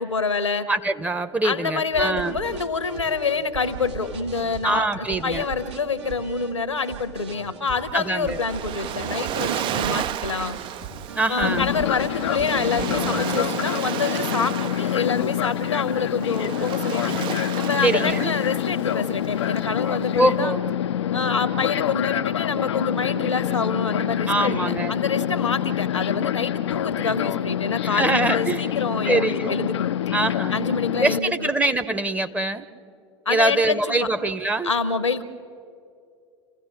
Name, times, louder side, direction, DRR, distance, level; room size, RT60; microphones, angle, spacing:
voice 1, 0.0-0.7 1.4-4.8 5.2-10.6 11.3-17.1 17.5-20.6 21.1-29.9 30.5-31.5 33.2-34.1 34.6-35.2, left 4 dB, 85° left, 12 dB, 1.1 m, -27 dB
voice 2, 0.7-2.4 4.6-5.4 7.9-8.4 11.2-11.7 17.8-18.3 20.2-20.6 24.3-24.9 27.8-28.7 29.1-29.6 30.1-30.5 31.0-32.7 33.3-34.7, right 2 dB, 10° right, 9 dB, 0.9 m, -23 dB
sound 1, 1.9-13.2, right 7 dB, 70° right, 2.0 m, -39 dB
Waves surf, 7.9-20.3, right 11 dB, 35° right, 0.5 m, -33 dB
Fixed-wing aircraft airplane, 11.4-31.2, left 11 dB, 70° left, 0.5 m, -26 dB
28.5 x 15.5 x 7.4 m, 2.4 s
figure-of-eight pair, 80°, 15 cm